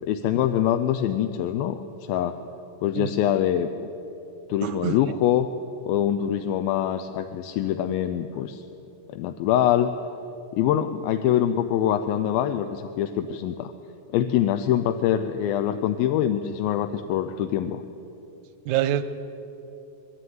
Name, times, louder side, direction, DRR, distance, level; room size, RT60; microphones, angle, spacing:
voice 1, 0.0-2.4 2.8-3.7 4.5-5.5 5.8-8.6 9.1-9.9 10.5-13.7 14.1-17.8, left 10 dB, 90° left, 8 dB, 2.5 m, -24 dB
voice 2, 4.6-5.0 18.7-19.0, right 12 dB, 75° right, 11 dB, 1.8 m, -25 dB
23.0 x 13.0 x 9.4 m, 2.9 s
omnidirectional pair, 4.1 m